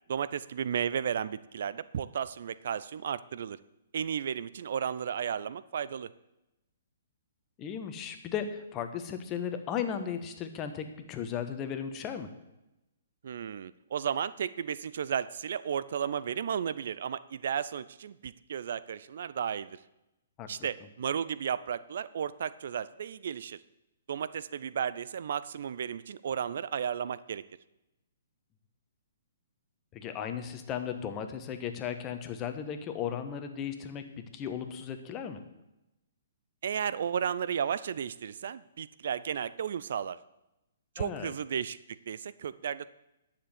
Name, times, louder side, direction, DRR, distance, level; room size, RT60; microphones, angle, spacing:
voice 1, 0.1-3.6 3.9-6.1 13.2-19.8 20.5-23.6 24.1-27.4 36.6-40.2 41.0-43.0, right 8 dB, 60° right, 17 dB, 0.4 m, -34 dB
voice 2, 7.6-12.3 20.4-20.5 29.9-35.4 41.0-41.3, left 8 dB, 25° left, 8 dB, 1.3 m, -36 dB
10.0 x 7.3 x 8.1 m, 0.94 s
figure-of-eight pair, 125°, 0 cm